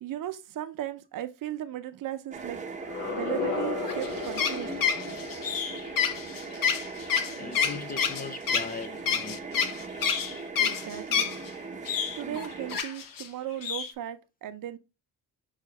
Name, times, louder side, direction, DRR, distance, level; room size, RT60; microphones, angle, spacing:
voice 1, 0.0-2.6 3.1-4.7 10.6-11.3 12.1-14.8, right 12 dB, 60° right, 0.7 m, -36 dB
sound 1, 2.3-12.8, right 4 dB, 20° right, 0.7 m, -39 dB
sound 2, 2.8-7.7, left 4 dB, 90° left, 1.3 m, -36 dB
sound 3, 3.8-11.5 11.9-13.3 13.6-13.9, left 7 dB, 60° left, 0.7 m, -28 dB
voice 2, 7.4-9.5, left 4 dB, 25° left, 0.3 m, -38 dB
5.8 x 3.0 x 2.9 m
cardioid pair, 135°, 38 cm